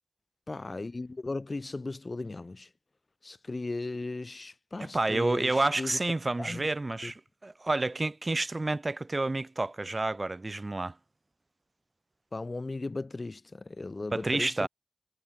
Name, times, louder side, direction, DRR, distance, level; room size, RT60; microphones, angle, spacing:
voice 1, 0.5-2.7 3.2-6.0 6.4-6.6 7.0-7.1 12.3-14.7, left 3 dB, 45° left, 1.3 m, -37 dB
voice 2, 4.9-10.9 14.1-14.7, right 2 dB, 40° right, 0.9 m, -29 dB
wide cardioid pair, 75°, 0 cm